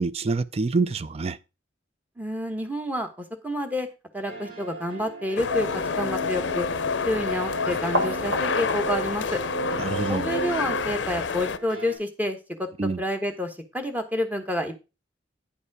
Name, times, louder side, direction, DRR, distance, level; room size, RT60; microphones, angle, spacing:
voice 1, 0.0-1.4 9.8-10.3 12.8-13.0, right 3 dB, 35° right, 0.4 m, -26 dB
voice 2, 2.2-3.1 3.4-3.9 4.1-5.7 6.0-6.7 7.0-9.4 10.1-12.7 13.0-14.8, left 1 dB, 10° right, 1.2 m, -29 dB
sound 1, 4.2-12.0, right 1 dB, 90° right, 4.9 m, -42 dB
sound 2, 5.4-11.6, left 5 dB, 75° left, 0.6 m, -29 dB
sound 3, 5.5-10.8, right 1 dB, 70° right, 1.9 m, -31 dB
9.8 x 5.3 x 4.7 m
head